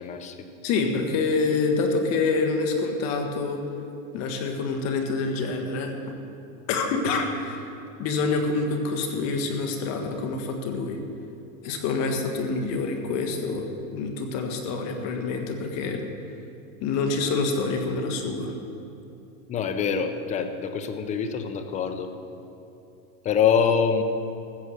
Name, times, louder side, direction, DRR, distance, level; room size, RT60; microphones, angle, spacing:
voice 1, 0.0-0.5 19.5-22.1 23.2-24.0, left 7 dB, 20° left, 8 dB, 0.6 m, -25 dB
voice 2, 0.6-3.6 4.1-5.9 6.7-7.7 8.0-11.0 11.6-16.0 16.8-18.5, left 4 dB, 40° left, 4 dB, 1.6 m, -26 dB
15.0 x 7.6 x 6.5 m, 2.9 s
supercardioid pair, 150°, 41 cm